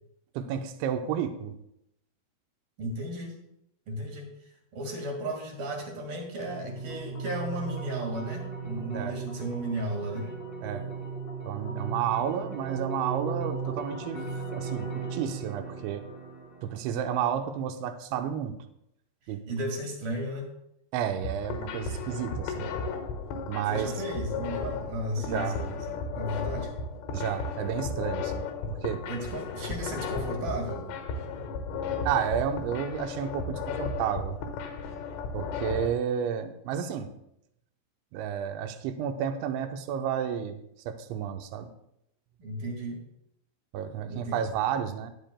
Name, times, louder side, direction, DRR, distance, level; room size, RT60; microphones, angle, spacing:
voice 1, 0.3-1.5 8.9-9.2 10.6-10.9 11.4-16.0 16.6-18.6 19.3-19.5 20.9-22.7 23.5-23.9 25.2-25.6 27.1-29.1 32.0-34.4 35.3-37.1 38.1-40.6 40.9-41.7 43.7-45.1, right 8 dB, 80° right, 6 dB, 3.0 m, -31 dB
voice 2, 2.8-3.4 3.9-4.3 4.7-10.3 19.5-20.5 23.7-26.7 29.1-30.9 42.4-43.0 44.1-44.4, right 1 dB, 55° right, 1 dB, 3.3 m, -34 dB
sound 1, 6.4-17.4, right 4 dB, 50° left, 1.1 m, -37 dB
sound 2, 21.2-35.9, left 4 dB, 85° left, 4.1 m, -34 dB
17.0 x 11.5 x 2.3 m, 0.78 s
omnidirectional pair, 5.6 m